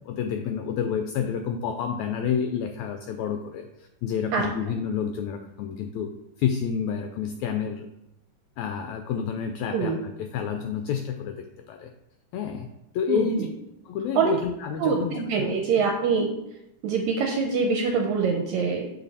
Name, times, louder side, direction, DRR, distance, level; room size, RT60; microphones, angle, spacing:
voice 1, 0.0-6.1 6.4-7.9 8.6-11.9 12.3-12.7 12.9-13.5 13.8-15.6, left 7 dB, 85° left, 6 dB, 1.6 m, -29 dB
voice 2, 13.1-13.4 14.2-14.4 14.8-16.3 16.8-18.9, right 5 dB, 75° right, 2 dB, 1.8 m, -24 dB
7.1 x 5.1 x 4.1 m, 0.89 s
omnidirectional pair, 3.7 m